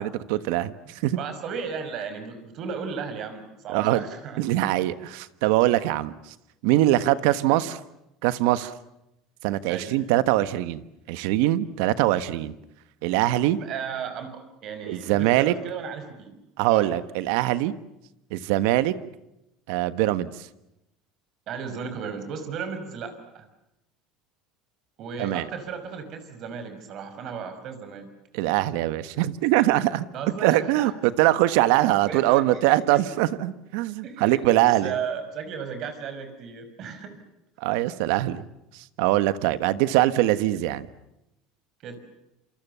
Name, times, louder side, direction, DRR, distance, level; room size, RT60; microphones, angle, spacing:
voice 1, 0.0-0.7 1.0-1.2 3.7-4.0 4.4-6.1 6.6-7.8 8.2-8.7 9.4-10.8 11.1-12.5 13.0-13.6 14.9-15.5 16.6-17.7 18.3-18.9 19.7-20.3 25.2-25.4 28.3-30.0 30.4-34.9 37.6-38.4 38.7-40.9, right 15 dB, 80° right, 13 dB, 1.4 m, -22 dB
voice 2, 0.9-4.4 7.5-7.6 9.7-9.9 13.6-16.4 16.7-17.0 21.5-23.5 25.0-28.1 30.1-30.9 32.0-33.1 34.0-37.2 41.8-42.0, right 6 dB, 50° right, 9 dB, 5.6 m, -35 dB
27.5 x 26.0 x 7.0 m, 0.89 s
supercardioid pair, 125°, 0 cm